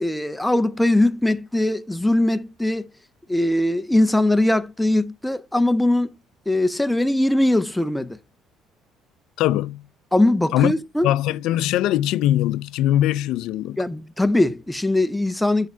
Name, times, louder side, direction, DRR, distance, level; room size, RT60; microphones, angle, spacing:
voice 1, 0.0-2.9 3.3-6.1 6.5-8.2 10.1-11.1 13.8-15.7, left 1 dB, 5° left, 0.4 m, -20 dB
voice 2, 9.4-9.9 10.5-10.7 11.0-13.8, left 13 dB, 75° left, 0.3 m, -21 dB
6.9 x 6.4 x 2.7 m
cardioid pair, 145°, 0 cm